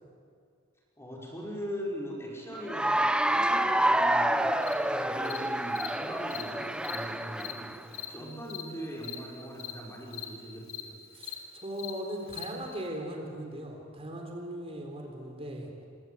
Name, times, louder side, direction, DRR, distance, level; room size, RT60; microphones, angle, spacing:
voice 1, 1.0-4.6 5.0-7.8 8.1-11.0, equal, 15° left, -3 dB, 5.4 m, -40 dB
Cheering / Applause, 2.6-7.8, right 1 dB, 5° right, 0.8 m, -28 dB
Cricket, 4.6-4.7 5.3-5.4 5.8-5.9 6.3-6.4 6.8-7.0 7.4-7.5 7.9-8.1 8.5-8.6 9.0-9.2 9.6-9.7 10.1-10.3 10.7-10.8 11.2-11.4 11.8-11.9 12.3-12.4, left 15 dB, 70° left, 3.7 m, -39 dB
voice 2, 8.2-8.8 11.1-15.7, right 1 dB, 30° right, 2 dB, 4.1 m, -39 dB
26.5 x 25.0 x 8.7 m, 2.2 s
head